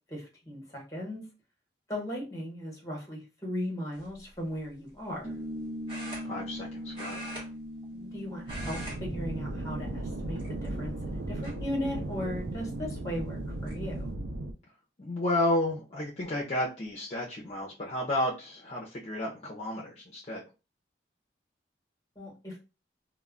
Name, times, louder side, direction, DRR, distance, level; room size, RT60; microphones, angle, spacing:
voice 1, 0.1-1.2 1.9-5.4 7.9-14.1 22.2-22.6, equal, 20° left, -1 dB, 0.9 m, -37 dB
sound 1, 3.9-4.2 5.9-6.7 6.9-8.1 8.4-9.0 9.3-9.5 10.3-10.9 11.4-11.5 13.0-13.1 13.4-13.8, right 1 dB, 30° right, 1.0 m, -42 dB
sound 2, 5.2-12.2, equal, 50° right, 0.8 m, -42 dB
voice 2, 6.2-7.2 15.0-20.4, left 1 dB, 35° left, -3 dB, 0.4 m, -32 dB
sound 3, 8.5-14.5, right 2 dB, 80° right, 0.5 m, -36 dB
2.2 x 2.0 x 3.5 m, 0.30 s
head